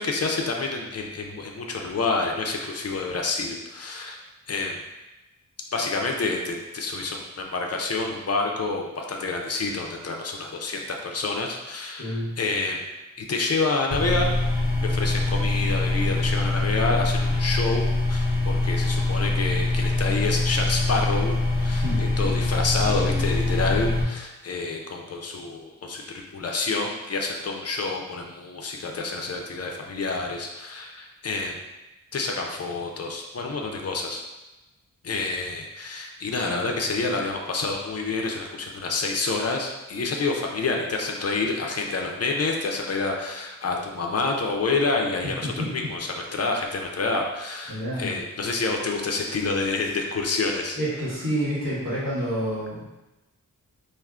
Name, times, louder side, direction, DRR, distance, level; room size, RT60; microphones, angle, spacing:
voice 1, 0.0-4.2 4.5-4.8 5.7-12.8 13.2-14.3 14.8-31.6 32.1-34.2 35.0-50.8, left 3 dB, 50° left, 1 dB, 0.4 m, -28 dB
voice 2, 12.0-12.4 21.7-22.1 45.2-45.7 47.7-48.2 50.7-52.9, equal, 75° right, -9 dB, 1.4 m, -29 dB
sound 1, 13.9-24.0, left 2 dB, 25° right, 0.9 m, -24 dB
3.5 x 2.4 x 2.3 m, 1.0 s
wide cardioid pair, 90°, 34 cm